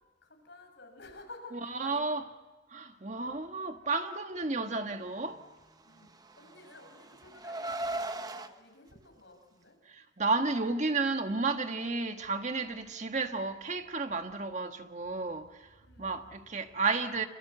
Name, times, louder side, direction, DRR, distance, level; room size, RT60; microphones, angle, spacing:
voice 1, 0.2-2.2 5.8-9.8 13.0-13.1 15.8-16.3, left 2 dB, 65° left, 6.2 m, -53 dB
voice 2, 1.8-2.2 2.7-5.4 9.9-17.3, right 3 dB, 40° right, 1.5 m, -32 dB
Car, 6.0-8.5, right 2 dB, 20° right, 1.0 m, -38 dB
26.5 x 26.0 x 8.0 m
head